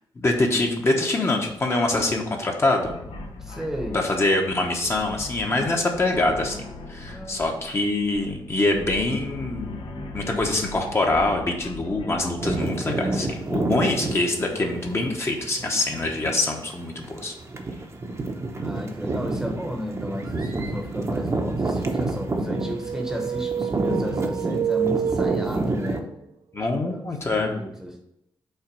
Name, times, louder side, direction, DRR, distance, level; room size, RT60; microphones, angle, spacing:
voice 1, 0.2-3.0 3.9-6.6 6.9-9.8 10.1-17.3 26.5-27.5, left 2 dB, 30° left, 2 dB, 0.9 m, -24 dB
sound 1, 2.8-12.9, left 2 dB, 90° left, 0.9 m, -39 dB
voice 2, 3.4-4.0 7.1-7.6 18.6-26.0 27.1-28.0, equal, 5° right, 1 dB, 0.9 m, -33 dB
sound 2, 12.4-26.0, right 2 dB, 35° right, 0.8 m, -29 dB
sound 3, 22.4-26.0, right 8 dB, 75° right, 0.5 m, -28 dB
5.7 x 3.9 x 5.2 m, 0.80 s
wide cardioid pair, 135°, 9 cm